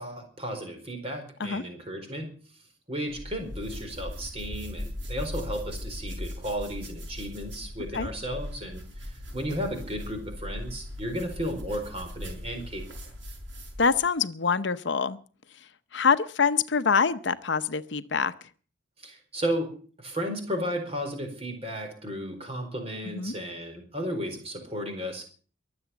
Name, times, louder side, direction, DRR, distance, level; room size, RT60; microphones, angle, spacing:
voice 1, 0.0-2.3 2.9-12.9 19.0-25.2, equal, 30° right, 4 dB, 4.4 m, -34 dB
sound 1, 3.1-14.1, left 1 dB, 75° right, 6.1 m, -39 dB
voice 2, 13.8-15.2 15.9-18.3 23.1-23.3, left 5 dB, 65° left, 12 dB, 0.8 m, -25 dB
23.0 x 7.9 x 7.1 m, 0.43 s
head